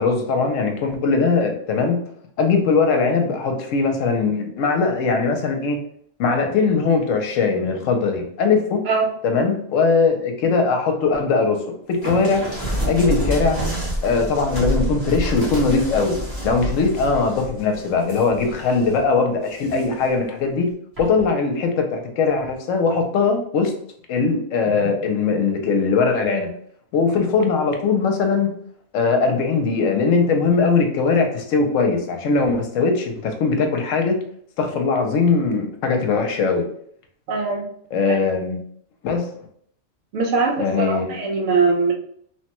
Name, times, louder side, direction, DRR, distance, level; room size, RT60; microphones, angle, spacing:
voice 1, 0.0-2.0 2.4-5.8 6.2-8.8 9.2-12.4 12.9-13.6 14.0-16.1 16.4-20.7 21.0-23.7 24.1-26.5 26.9-28.5 28.9-34.2 34.6-36.6 37.9-38.6 39.0-39.3 40.6-41.1, left 4 dB, 80° left, 4 dB, 1.0 m, -20 dB
sound 1, 12.0-19.0 19.5-20.1 21.0-21.3, equal, 20° right, 0.8 m, -28 dB
voice 2, 37.3-37.6 38.1-38.2 40.1-41.9, right 4 dB, 70° right, 2 dB, 0.9 m, -21 dB
3.1 x 2.1 x 2.9 m, 0.64 s
omnidirectional pair, 1.3 m